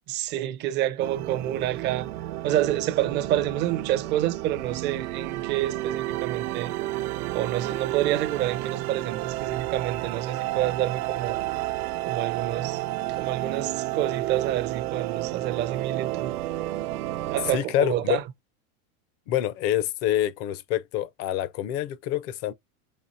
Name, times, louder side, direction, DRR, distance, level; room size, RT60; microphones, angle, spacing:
voice 1, 0.1-2.1 2.4-6.8 7.3-11.4 12.0-12.8 13.1-16.3 17.3-18.2, right 12 dB, 25° right, 0.4 m, -28 dB
sound 1, 1.0-17.6, right 16 dB, 85° right, 0.7 m, -31 dB
voice 2, 17.5-18.2 19.3-22.5, left 12 dB, 35° left, 0.5 m, -26 dB
4.2 x 2.8 x 4.1 m
supercardioid pair, 140°, 44 cm